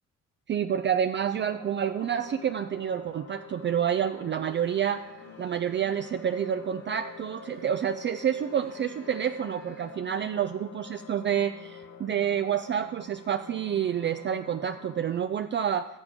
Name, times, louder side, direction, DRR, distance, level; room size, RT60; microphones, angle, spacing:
voice 1, 0.5-5.0 5.4-15.9, right 9 dB, 40° right, 10 dB, 0.4 m, -28 dB
sound 1, 1.3-15.2, left 7 dB, 50° left, 1.1 m, -47 dB
sound 2, 4.5-9.9, right 4 dB, 65° right, 2.5 m, -54 dB
15.0 x 7.4 x 3.6 m, 0.90 s
cardioid pair, 90°, 30 cm